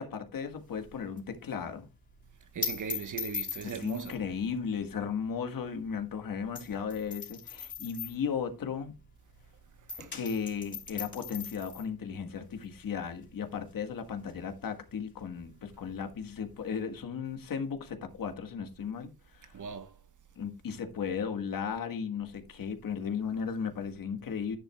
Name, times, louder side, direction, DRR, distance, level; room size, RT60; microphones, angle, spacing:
voice 1, 0.0-1.9 3.6-9.0 10.1-19.6 20.4-24.6, left 6 dB, 65° left, 1.6 m, -35 dB
sound 1, 0.6-9.5 9.7-17.0, left 6 dB, 30° left, 3.1 m, -42 dB
voice 2, 2.5-4.2 9.9-10.1 19.5-20.0, right 6 dB, 55° right, 1.2 m, -38 dB
10.5 x 10.0 x 2.3 m
wide cardioid pair, 120°, 36 cm